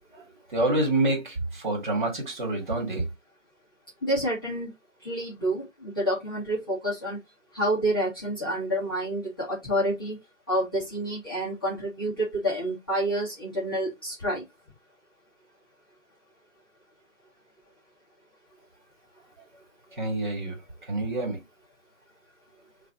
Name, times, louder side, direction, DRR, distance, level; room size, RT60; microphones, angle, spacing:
voice 1, 0.5-3.0 20.0-20.6 20.9-21.4, right 2 dB, 35° right, 1.6 m, -27 dB
voice 2, 4.0-4.7 5.0-7.2 7.5-10.2 10.5-14.4, right 1 dB, 15° left, 0.8 m, -28 dB
4.1 x 2.5 x 3.4 m
figure-of-eight pair, 160°, 39 cm